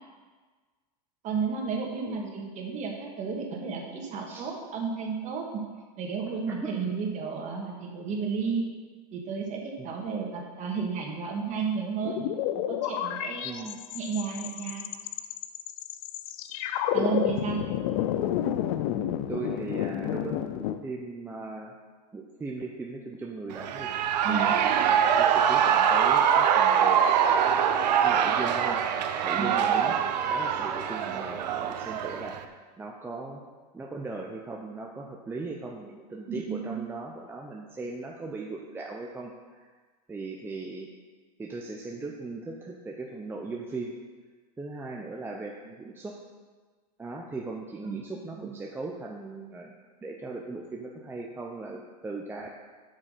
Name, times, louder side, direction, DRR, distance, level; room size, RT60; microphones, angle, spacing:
voice 1, 1.2-5.6 6.0-8.7 9.1-12.2 12.7-14.8 16.9-17.6 24.2-24.5 29.4-29.9 36.3-36.8 47.8-48.0 48.4-48.5, right 5 dB, 35° right, 0 dB, 2.0 m, -32 dB
sound 1, 12.0-20.8, left 11 dB, 55° left, 0.7 m, -30 dB
voice 2, 13.4-13.8 16.9-17.2 19.3-21.7 22.1-23.9 24.3-24.6 25.2-27.0 28.0-28.8 29.2-30.0 30.3-32.5 32.8-33.4 33.7-39.7 40.1-40.9 41.4-43.9 44.6-46.2 47.0-49.7 50.0-52.5, right 3 dB, 10° right, -1 dB, 0.8 m, -38 dB
Shout / Cheering, 23.5-32.4, right 8 dB, 80° right, 0.8 m, -24 dB
8.0 x 6.4 x 6.6 m, 1.4 s
supercardioid pair, 130°, 21 cm